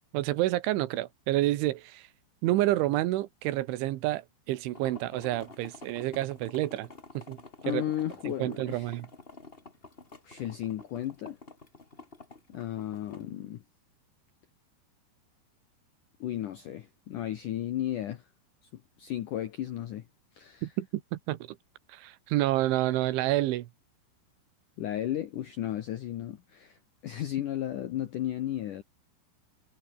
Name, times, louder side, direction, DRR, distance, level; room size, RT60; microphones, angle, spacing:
voice 1, 0.1-2.1 2.4-6.9 7.2-7.4 7.6-7.8 8.3-9.1 20.6-21.6 21.9-23.7, right 16 dB, 80° right, 3.6 m, -29 dB
sound 1, 4.7-13.2, left 3 dB, 30° left, 1.0 m, -49 dB
voice 2, 7.6-9.0 10.2-11.4 12.5-13.6 16.2-18.2 18.7-20.1 20.3-20.7 24.8-26.8 27.0-28.8, left 12 dB, 75° left, 1.9 m, -34 dB
omnidirectional pair, 5.4 m